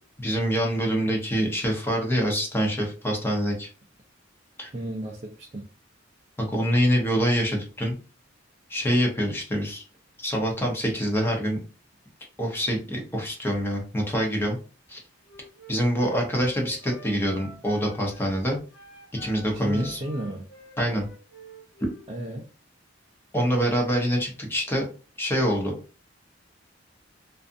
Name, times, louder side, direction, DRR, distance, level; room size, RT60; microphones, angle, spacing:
voice 1, 0.2-3.7 4.6-4.7 6.4-8.0 8.7-9.8 10.2-11.6 12.4-14.6 14.9-15.0 15.7-18.6 19.2-20.0 20.8-21.0 23.3-24.8 25.2-25.7, equal, 10° left, 0.7 m, -25 dB
voice 2, 4.7-5.7 19.5-20.4 22.1-22.5, right 1 dB, 35° right, 0.4 m, -34 dB
Wind instrument woodwind instrument, 15.2-18.3 18.7-22.1, equal, 75° left, 1.0 m, -47 dB
2.5 x 2.4 x 2.5 m
head